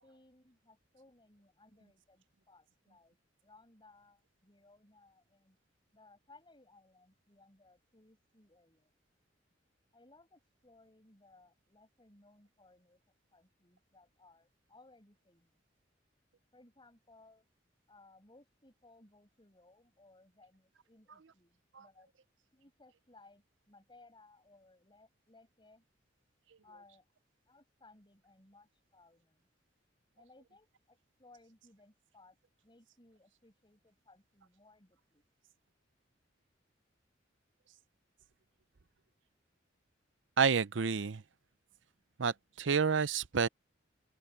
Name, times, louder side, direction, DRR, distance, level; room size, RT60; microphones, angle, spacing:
voice 1, 0.0-3.2 3.4-5.6 5.9-8.9 9.9-13.0 13.3-15.6 16.5-17.4 17.9-22.1 22.5-25.8 26.6-27.1 27.5-29.5 30.2-32.4 32.6-35.2, left 2 dB, 25° left, 7.7 m, -63 dB
voice 2, 40.4-41.2 42.2-43.5, right 6 dB, 75° right, 0.7 m, -29 dB
open air
head